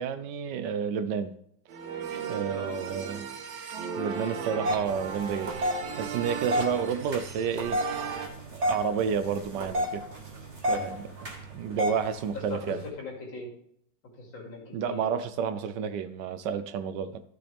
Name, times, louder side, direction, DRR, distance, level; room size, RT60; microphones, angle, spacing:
voice 1, 0.0-1.3 2.3-3.2 4.0-5.6 6.0-7.8 8.5-10.0 10.7-11.1 11.5-12.8 14.7-17.2, right 7 dB, 75° right, 11 dB, 1.1 m, -30 dB
sound 1, 1.7-8.3, right 6 dB, 90° right, 1.8 m, -36 dB
voice 2, 2.5-2.8 12.3-13.5 14.2-15.1, left 3 dB, 80° left, -1 dB, 3.1 m, -40 dB
sound 2, 4.6-12.9, equal, 40° right, 1.7 m, -33 dB
13.0 x 6.2 x 3.4 m, 0.71 s
omnidirectional pair, 2.1 m